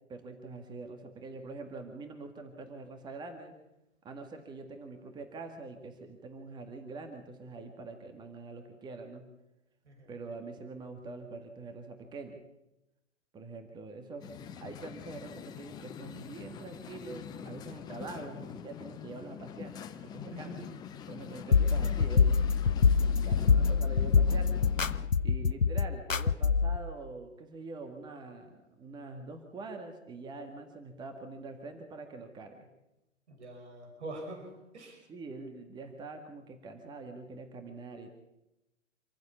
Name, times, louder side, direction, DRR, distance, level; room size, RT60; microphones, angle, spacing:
voice 1, 0.1-3.5 4.0-9.3 10.1-12.4 13.3-14.3 14.6-20.7 21.1-22.4 23.0-24.5 25.2-32.7 35.1-38.2, right 3 dB, 10° right, 6 dB, 1.8 m, -44 dB
sound 1, 14.2-25.1, left 8 dB, 10° left, 0.8 m, -44 dB
voice 2, 20.3-20.7 33.3-35.0, right 1 dB, 60° right, 2 dB, 6.1 m, -44 dB
sound 2, 21.5-26.8, left 5 dB, 85° left, 0.8 m, -25 dB
26.5 x 14.5 x 7.2 m, 0.93 s
figure-of-eight pair, 120°, 38 cm